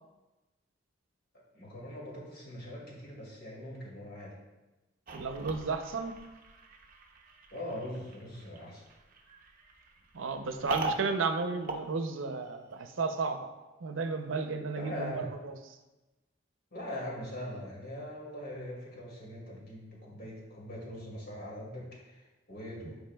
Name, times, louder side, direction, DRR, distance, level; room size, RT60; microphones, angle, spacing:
voice 1, 1.5-4.4 7.5-8.8 14.8-15.2 16.7-22.9, left 1 dB, 60° left, -4 dB, 2.3 m, -42 dB
sound 1, 5.1-12.7, right 2 dB, 45° right, 0.7 m, -41 dB
voice 2, 5.1-6.2 10.1-13.5 13.8-15.8, right 4 dB, 85° right, 7 dB, 0.6 m, -33 dB
10.5 x 4.7 x 2.3 m, 1.1 s
head